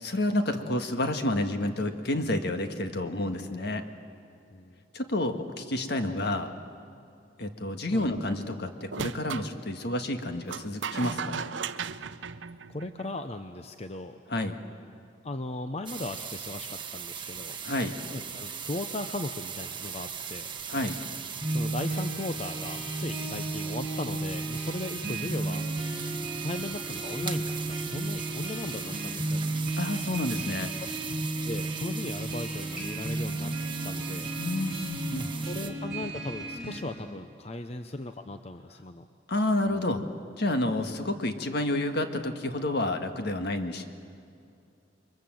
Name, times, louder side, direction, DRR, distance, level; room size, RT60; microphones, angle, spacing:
voice 1, 0.0-3.8 4.9-6.5 7.4-11.5 14.3-14.6 17.6-17.9 20.7-21.0 29.8-30.7 34.4-35.3 39.3-40.0 40.4-43.9, left 1 dB, 60° left, 6 dB, 1.7 m, -29 dB
sound 1, 8.9-9.5 10.5-13.2, right 6 dB, 85° right, 0.7 m, -36 dB
voice 2, 12.7-14.2 15.2-17.6 18.1-20.5 21.5-25.7 26.4-29.6 30.6-30.7 31.5-33.5 33.8-34.3 35.4-39.1 39.7-39.8 40.9-41.0, left 2 dB, 35° left, 8 dB, 0.7 m, -37 dB
sound 2, 15.9-35.7, right 7 dB, 25° right, 1.3 m, -39 dB
sound 3, 21.4-36.8, right 2 dB, ahead, 5.8 m, -34 dB
28.5 x 23.0 x 7.7 m, 2.5 s
head